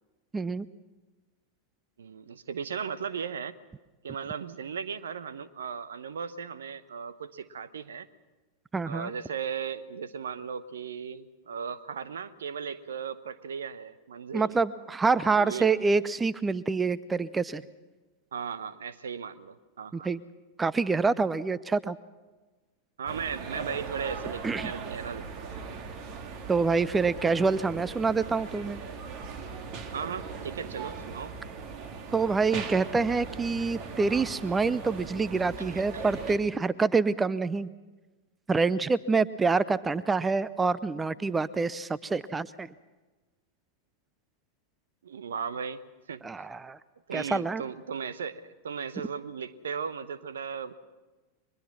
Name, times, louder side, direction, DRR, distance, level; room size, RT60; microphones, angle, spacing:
voice 1, 0.3-0.7 8.7-9.1 14.3-17.6 19.9-20.2 20.6-22.0 24.4-24.7 26.5-28.8 32.1-37.7 38.5-42.7 46.2-46.8 47.1-47.6, right 4 dB, 15° right, 19 dB, 0.6 m, -26 dB
voice 2, 2.0-3.6 4.0-8.1 8.8-14.6 15.3-16.0 18.3-20.1 23.0-25.6 29.9-31.4 35.6-36.1 45.0-46.2 47.1-50.7, right 6 dB, 65° right, 15 dB, 0.9 m, -37 dB
sound 1, 23.1-36.4, right 5 dB, 40° right, 2.0 m, -39 dB
23.5 x 21.0 x 6.1 m, 1.2 s
figure-of-eight pair, 90°, 0 cm